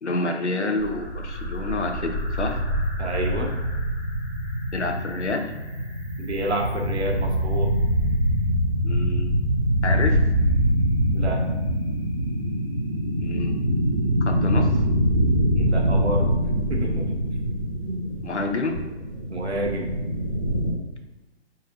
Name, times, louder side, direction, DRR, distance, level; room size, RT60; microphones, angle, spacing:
voice 1, 0.0-2.6 4.7-5.5 8.8-9.3 9.8-10.2 13.2-13.7 14.3-14.8 18.2-18.8, left 2 dB, 80° left, 5 dB, 0.8 m, -28 dB
sound 1, 0.8-20.7, equal, 10° left, 0.7 m, -24 dB
voice 2, 3.0-3.5 6.2-7.7 11.1-11.4 15.5-16.3 16.7-17.1 17.8-18.1 19.3-19.9, right 1 dB, 75° right, 1 dB, 1.0 m, -29 dB
4.8 x 4.2 x 2.4 m, 1.1 s
figure-of-eight pair, 140°, 34 cm